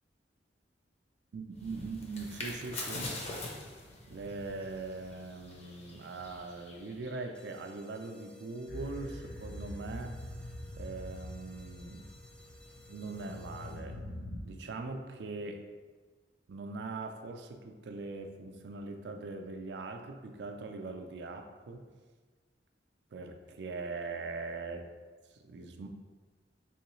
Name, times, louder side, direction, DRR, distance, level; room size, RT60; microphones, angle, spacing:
voice 1, 1.3-3.1 4.1-10.2 10.8-12.1 12.9-14.0 14.4-15.6 16.5-21.9 23.1-24.8 25.3-25.9, right 3 dB, 70° right, 5 dB, 0.4 m, -41 dB
sound 1, 1.5-7.3, left 2 dB, 35° left, 0.7 m, -43 dB
sound 2, 7.3-14.1, equal, 5° left, 0.3 m, -56 dB
sound 3, 8.7-14.4, left 1 dB, 80° left, 0.5 m, -44 dB
3.7 x 3.0 x 3.0 m, 1.4 s
head